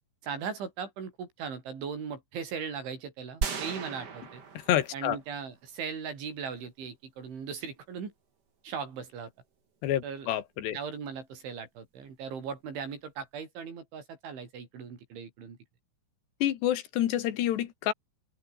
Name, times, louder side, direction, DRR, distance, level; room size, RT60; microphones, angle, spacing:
voice 1, 0.2-4.4 4.9-8.1 8.6-9.3 10.0-10.3 10.7-15.6, right 6 dB, 85° right, 7.8 m, -38 dB
sound 1, 3.4-5.3 5.7-5.8, right 6 dB, 45° right, 1.4 m, -36 dB
voice 2, 4.6-5.2 9.8-10.8 16.4-17.9, left 12 dB, 70° left, 3.6 m, -28 dB
open air
omnidirectional pair, 5.3 m